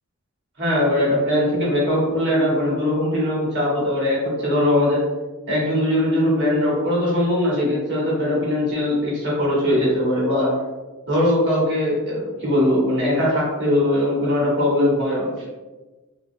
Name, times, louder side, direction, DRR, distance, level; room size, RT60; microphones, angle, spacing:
voice 1, 0.6-5.0 5.5-10.6 11.1-15.5, left 1 dB, 55° right, -5 dB, 1.2 m, -20 dB
3.4 x 2.3 x 2.6 m, 1.2 s
head